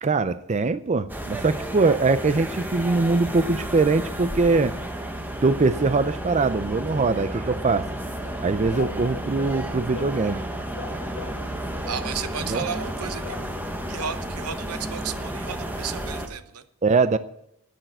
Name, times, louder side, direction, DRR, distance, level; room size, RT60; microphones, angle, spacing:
voice 1, 0.0-4.7 5.4-7.9 8.4-10.4 12.4-12.7 16.8-17.2, right 3 dB, 30° right, 14 dB, 0.5 m, -22 dB
sound 1, 1.1-16.3, right 1 dB, 10° right, 1.2 m, -32 dB
sound 2, 8.2-10.5 10.8-11.5 11.8-12.3 12.5-13.0 13.2-13.5 13.9-14.2 14.5-14.6 14.9-15.0, left 5 dB, 55° left, 1.9 m, -40 dB
voice 2, 11.9-13.5 13.9-16.6, right 7 dB, 85° right, 12 dB, 0.9 m, -33 dB
10.0 x 9.2 x 8.9 m, 0.76 s
head